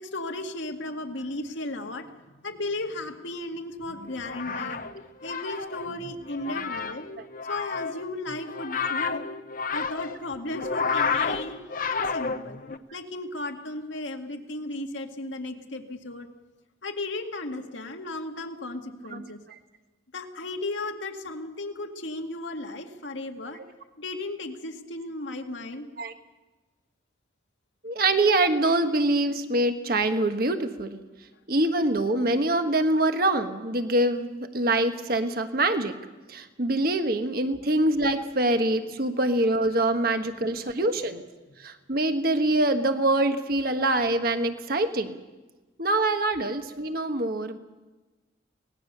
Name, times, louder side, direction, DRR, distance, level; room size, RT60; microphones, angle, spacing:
voice 1, 0.0-4.9 5.2-7.1 7.5-9.3 9.7-11.6 11.9-12.6 12.9-16.3 16.8-19.4 20.1-23.6 24.0-25.9 40.7-40.8, left 2 dB, 85° left, 4 dB, 2.0 m, -35 dB
sound 1, 4.1-12.8, left 5 dB, 45° left, 0.9 m, -31 dB
voice 2, 27.8-31.0 31.5-36.0 36.3-41.2 41.6-45.2 45.8-47.6, right 2 dB, 50° right, 7 dB, 1.4 m, -24 dB
24.5 x 19.5 x 6.8 m, 1.2 s
head